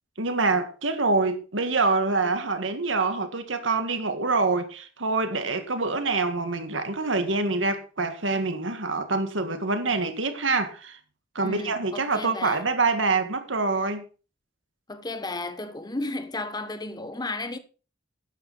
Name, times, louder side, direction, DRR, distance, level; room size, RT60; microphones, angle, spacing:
voice 1, 0.2-11.0 11.4-14.0, right 3 dB, 90° right, 2.1 m, -25 dB
voice 2, 11.4-12.7 14.9-17.6, left 2 dB, 20° left, 1.1 m, -33 dB
12.5 x 9.9 x 4.3 m
head